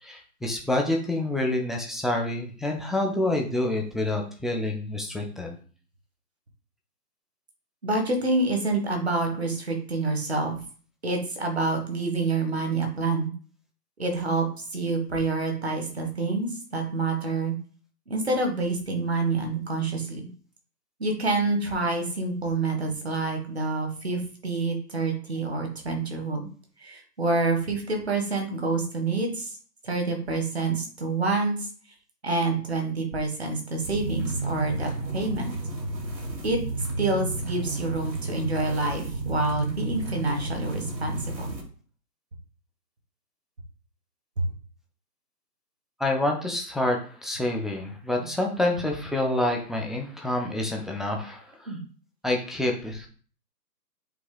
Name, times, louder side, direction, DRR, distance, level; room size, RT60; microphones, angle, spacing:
voice 1, 0.0-5.6 46.0-51.7 52.2-53.1, left 1 dB, ahead, 0 dB, 0.5 m, -27 dB
voice 2, 7.8-10.6 11.0-13.3 14.0-14.4 14.7-17.5 18.1-20.3 21.0-26.5 26.8-29.6 29.8-31.7 32.2-35.5 36.4-36.6 37.0-41.6 48.2-48.3 48.7-48.8 51.7-51.8, right 3 dB, 40° right, 3 dB, 1.6 m, -27 dB
sound 1, 33.8-41.6, right 2 dB, 90° right, 2.9 m, -32 dB
7.6 x 3.1 x 5.3 m, 0.43 s
hypercardioid pair, 180°, 50 cm